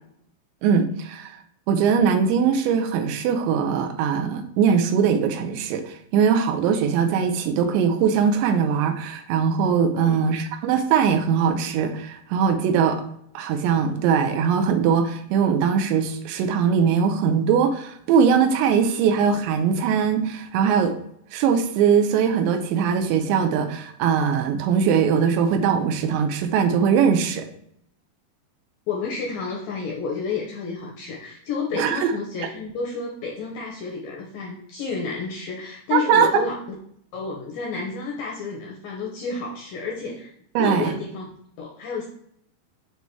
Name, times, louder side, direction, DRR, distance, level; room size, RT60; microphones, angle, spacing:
voice 1, 0.6-1.3 1.7-13.0 13.3-20.9 21.3-27.5 31.7-32.1 35.9-36.5 40.6-40.9, right 7 dB, 85° right, 6 dB, 2.9 m, -21 dB
voice 2, 9.9-10.3 28.9-36.6 37.1-40.3 40.6-41.3 41.6-42.1, left 4 dB, 85° left, 0 dB, 1.9 m, -30 dB
8.0 x 2.7 x 4.5 m, 0.70 s
omnidirectional pair, 4.9 m